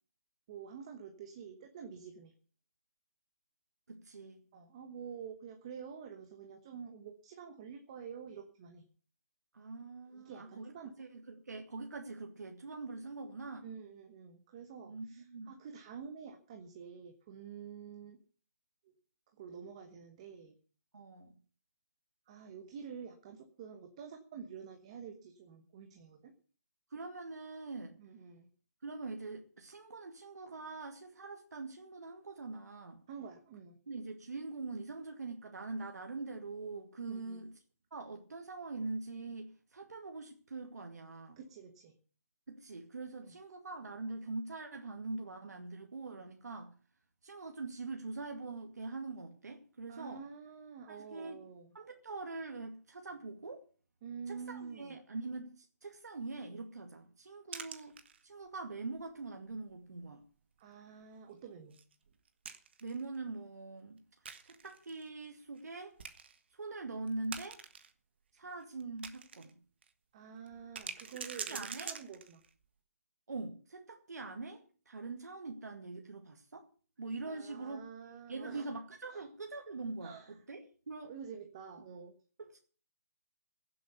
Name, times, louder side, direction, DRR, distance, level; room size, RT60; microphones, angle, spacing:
voice 1, 0.5-2.3 4.5-8.9 10.1-11.1 13.6-18.2 19.3-20.5 22.3-26.3 28.0-28.5 33.1-33.8 37.1-37.4 41.4-41.9 43.2-43.3 49.9-51.7 54.0-55.0 60.6-61.8 70.1-72.4 77.2-78.7 79.1-79.2 80.0-80.4 81.1-82.1, right 6 dB, 20° right, 5 dB, 1.2 m, -48 dB
voice 2, 3.9-4.5 9.5-10.7 11.0-13.7 14.8-15.5 20.9-21.4 26.9-28.0 28.8-33.0 33.9-37.5 37.9-41.4 42.5-46.7 47.2-50.2 50.9-51.4 51.7-53.6 54.3-58.0 58.2-60.2 62.8-66.0 66.5-67.6 68.3-69.6 71.5-71.9 73.3-76.7 77.0-77.8 78.3-80.2 80.5-81.1 82.5-82.6, right 3 dB, 85° right, 3 dB, 2.2 m, -43 dB
sound 1, 57.5-58.5 59.0-59.1 59.5-59.7 60.0-60.1 61.7-63.0 64.3-65.0 65.6-65.7 66.0-66.4 67.1-67.9 68.4-69.5 69.8-69.9 70.5-72.5, right 6 dB, 40° right, 1.5 m, -45 dB
16.5 x 7.8 x 6.7 m, 0.40 s
hypercardioid pair, 175°, 9 cm